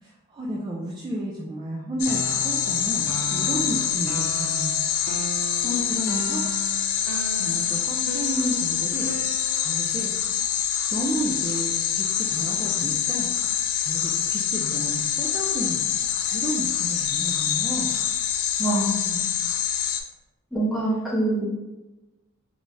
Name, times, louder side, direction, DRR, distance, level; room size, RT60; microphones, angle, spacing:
voice 1, 0.0-4.8 5.6-6.4 7.3-9.1 9.6-10.1 10.9-13.3 13.8-15.8 16.2-17.9, right 1 dB, 20° right, -4 dB, 0.3 m, -31 dB
sound 1, 2.0-20.0, left 9 dB, 85° left, 0.4 m, -26 dB
sound 2, 2.1-9.9, right 4 dB, 85° right, 0.4 m, -37 dB
voice 2, 18.6-19.2 20.5-21.5, right 2 dB, ahead, -6 dB, 0.9 m, -25 dB
3.4 x 3.2 x 2.6 m, 1.1 s
head